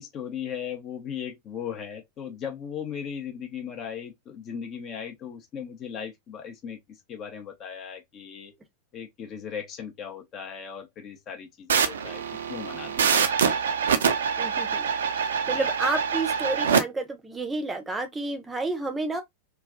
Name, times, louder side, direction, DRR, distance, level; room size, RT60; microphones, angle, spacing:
voice 1, 0.0-6.8 7.1-8.5 8.9-12.2 12.5-13.1 15.5-15.7, left 8 dB, 35° left, 0.7 m, -37 dB
sound 1, 11.7-16.8, right 6 dB, 65° right, 0.4 m, -25 dB
voice 2, 14.4-14.9 15.5-19.2, right 2 dB, 10° right, 0.7 m, -30 dB
3.1 x 2.2 x 2.3 m
figure-of-eight pair, 90°, 0 cm